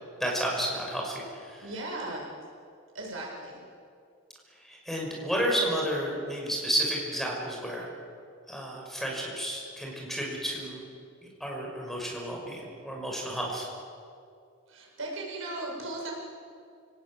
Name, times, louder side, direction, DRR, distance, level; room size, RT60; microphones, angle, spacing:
voice 1, 0.2-1.6 4.6-7.9 8.5-10.9 11.4-13.7, equal, ahead, -2 dB, 6.1 m, -31 dB
voice 2, 1.6-2.3 2.9-3.6 14.7-16.1, right 2 dB, 75° right, -2 dB, 7.9 m, -37 dB
29.0 x 18.5 x 9.2 m, 2.3 s
head